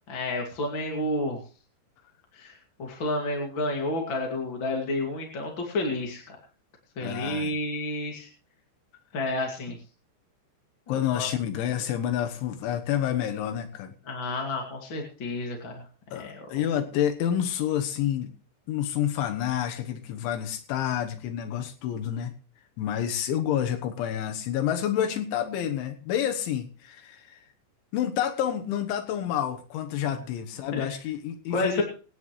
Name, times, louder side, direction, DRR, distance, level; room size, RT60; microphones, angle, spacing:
voice 1, 0.1-1.4 2.3-6.4 7.0-8.3 9.1-9.8 11.1-11.3 14.1-15.8 16.1-16.5 30.7-30.9 31.5-31.8, left 2 dB, 35° left, 1 dB, 2.2 m, -30 dB
voice 2, 7.0-7.5 10.9-13.9 16.1-18.3 18.7-22.3 22.8-27.4 27.9-31.8, left 10 dB, 85° left, 6 dB, 3.6 m, -29 dB
26.0 x 10.0 x 3.2 m, 0.38 s
omnidirectional pair, 5.3 m